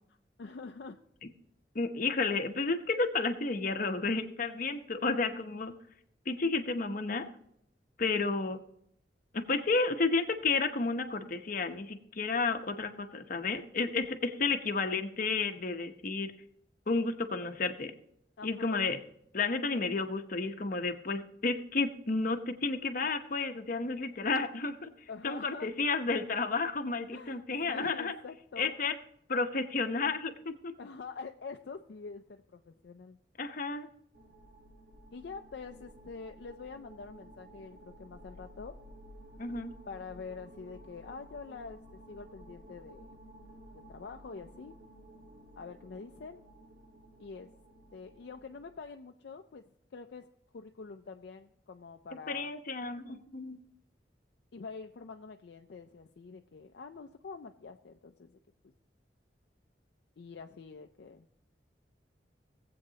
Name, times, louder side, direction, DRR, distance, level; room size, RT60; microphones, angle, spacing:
voice 1, 0.4-1.0 18.4-18.8 25.1-25.8 27.1-28.7 30.8-33.2 35.1-38.8 39.9-43.2 43.7-44.7 45.6-46.4 47.2-47.5 47.9-49.6 49.9-50.3 50.5-52.5 53.1-53.3 54.5-58.4 58.6-58.7 60.2-61.3, left 4 dB, 65° left, 5 dB, 0.4 m, -46 dB
voice 2, 1.7-5.8 6.3-7.3 8.0-8.6 9.3-16.3 16.9-17.9 18.4-19.0 19.3-28.1 28.6-29.0 29.3-30.7 33.4-33.9 39.4-39.7 52.3-53.6, left 3 dB, 50° left, 6 dB, 0.9 m, -32 dB
sound 1, 34.1-48.7, equal, 70° right, 1.7 m, -54 dB
18.5 x 7.9 x 2.8 m, 0.73 s
head